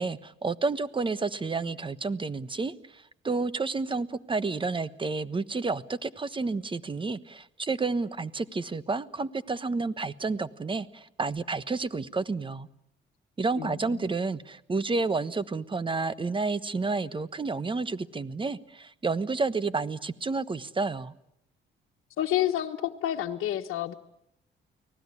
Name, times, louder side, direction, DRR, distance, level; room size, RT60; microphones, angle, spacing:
voice 1, 0.0-12.7 13.4-21.1, right 3 dB, 25° right, 15 dB, 1.2 m, -30 dB
voice 2, 13.6-14.0 22.2-23.9, left 12 dB, 75° left, 0 dB, 1.4 m, -29 dB
30.0 x 19.0 x 9.8 m, 0.80 s
cardioid pair, 95°, 21 cm